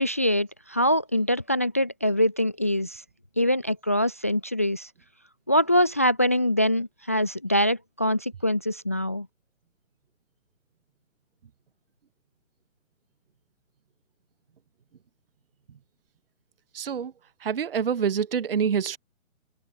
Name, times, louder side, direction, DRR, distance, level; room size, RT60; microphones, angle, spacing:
voice 1, 0.0-3.0 3.4-4.9 5.5-9.3, equal, 10° left, 0.5 m, -24 dB
voice 2, 16.7-17.1 17.4-19.0, right 7 dB, 45° right, 0.7 m, -26 dB
figure-of-eight pair, 135°, 41 cm